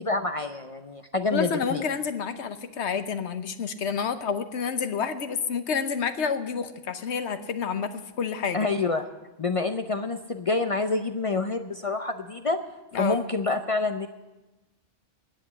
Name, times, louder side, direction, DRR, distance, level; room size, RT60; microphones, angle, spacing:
voice 1, 0.0-1.8 8.5-9.1 9.4-12.6 12.9-14.1, left 3 dB, 45° left, 7 dB, 0.4 m, -27 dB
voice 2, 1.3-8.7 12.9-13.2, left 6 dB, 65° left, 10 dB, 1.1 m, -29 dB
10.0 x 8.3 x 9.7 m, 1.1 s
omnidirectional pair, 1.3 m